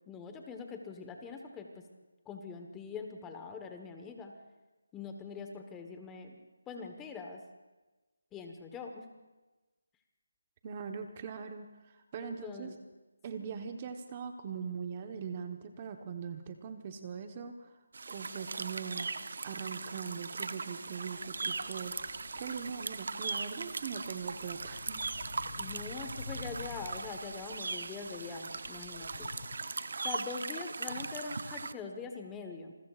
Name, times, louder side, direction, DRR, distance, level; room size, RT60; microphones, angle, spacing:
voice 1, 0.1-1.8 2.2-4.3 4.9-6.4 6.7-7.4 8.3-9.1 12.2-12.8 25.6-29.3 30.0-32.7, left 5 dB, 10° left, 4 dB, 1.2 m, -43 dB
voice 2, 10.6-12.7 13.2-17.7 18.1-19.1 19.4-22.0 22.4-25.0, right 6 dB, 25° right, 6 dB, 1.1 m, -41 dB
sound 1, 17.9-31.7, right 4 dB, 60° right, 0.8 m, -39 dB
sound 2, 20.9-29.6, left 3 dB, 50° left, 0.9 m, -49 dB
27.5 x 21.0 x 2.5 m, 1.1 s
figure-of-eight pair, 165°, 0 cm